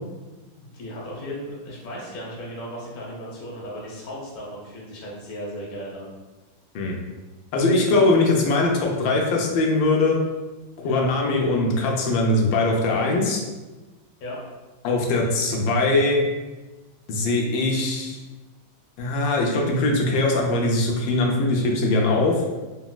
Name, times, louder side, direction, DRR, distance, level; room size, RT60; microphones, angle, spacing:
voice 1, 0.6-6.1 10.8-11.0 14.2-14.4, equal, 45° left, -4 dB, 0.7 m, -36 dB
voice 2, 7.5-10.2 10.8-13.4 14.8-16.2 17.1-18.2 19.0-22.4, left 2 dB, 90° left, 0 dB, 1.3 m, -21 dB
4.0 x 2.2 x 2.3 m, 1.2 s
omnidirectional pair, 2.0 m